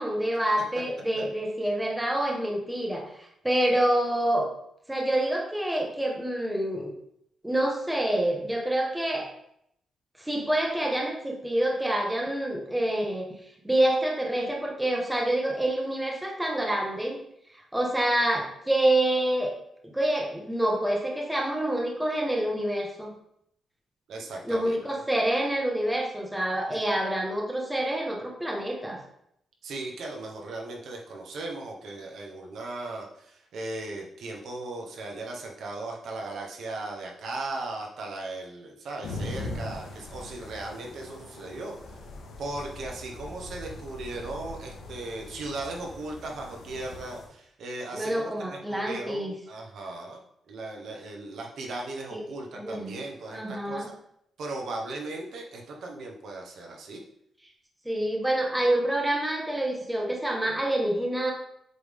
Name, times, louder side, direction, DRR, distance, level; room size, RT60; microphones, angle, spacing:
voice 1, 0.0-4.5 4.9-6.9 7.4-9.3 10.2-13.2 13.6-17.2 17.7-19.5 19.8-23.1 24.4-29.0 47.9-49.3 52.1-52.3 52.5-53.0 53.3-53.9 57.8-61.3, right 1 dB, 5° right, -1 dB, 1.1 m, -27 dB
voice 2, 24.1-24.8 26.7-26.8 29.6-41.8 42.4-54.0 54.4-57.0, right 2 dB, 70° right, 1 dB, 1.1 m, -37 dB
sound 1, 39.0-47.3, left 2 dB, 85° left, 1.1 m, -41 dB
7.8 x 3.5 x 3.6 m, 0.74 s
wide cardioid pair, 145°, 0 cm